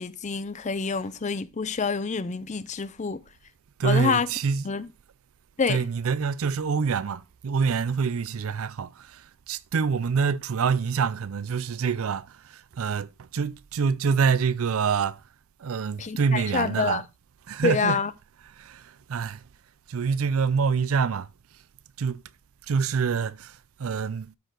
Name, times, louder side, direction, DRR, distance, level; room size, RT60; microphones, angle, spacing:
voice 1, 0.0-3.2 3.8-4.3 4.6-4.9 5.6-5.8 16.0-17.0 17.6-18.1, left 5 dB, 35° left, 0.5 m, -27 dB
voice 2, 3.8-4.6 5.7-15.2 15.6-17.0 17.5-18.0 18.6-19.4 19.9-21.3 22.0-22.2 22.7-24.3, right 6 dB, 70° right, 0.4 m, -26 dB
13.0 x 4.5 x 3.8 m
head